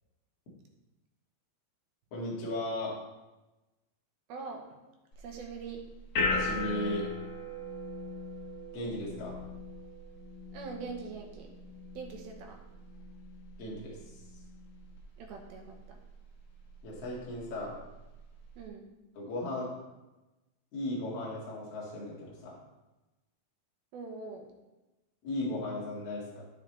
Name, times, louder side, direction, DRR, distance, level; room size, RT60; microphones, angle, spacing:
voice 1, 2.1-2.9 6.3-7.0 8.7-9.4 13.6-14.0 16.8-17.8 19.2-19.7 20.7-22.6 25.2-26.4, left 1 dB, 45° left, -4 dB, 2.6 m, -36 dB
voice 2, 4.3-4.6 5.2-5.8 10.5-11.5 12.0-12.6 15.2-16.0 18.6-18.9 23.9-24.5, right 4 dB, 80° right, 1 dB, 2.9 m, -42 dB
sound 1, 5.1-18.7, left 2 dB, 75° left, 1.0 m, -39 dB
13.0 x 5.7 x 3.3 m, 1.1 s
omnidirectional pair, 4.3 m